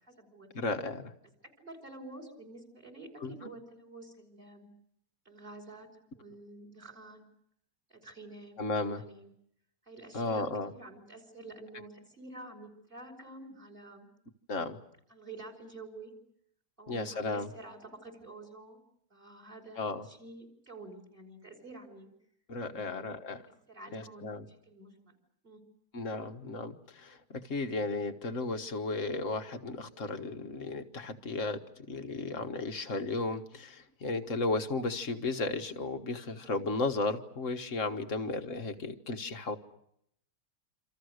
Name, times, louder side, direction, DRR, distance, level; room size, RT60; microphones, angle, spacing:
voice 1, 0.0-0.7 1.6-4.7 5.3-5.9 6.1-7.3 7.9-9.3 9.8-14.1 15.1-16.1 16.8-18.8 19.1-22.1 22.6-23.1 23.7-25.1 25.4-25.6 36.6-36.8 38.3-38.4, right 2 dB, 25° right, 5 dB, 5.4 m, -49 dB
voice 2, 0.5-1.1 3.2-3.4 8.6-9.0 10.1-10.7 14.5-14.8 16.9-17.5 19.8-20.0 22.5-23.5 23.9-24.5 25.9-31.6 31.9-39.5, left 3 dB, 40° left, 7 dB, 1.6 m, -34 dB
27.5 x 27.5 x 6.6 m, 0.75 s
omnidirectional pair, 2.4 m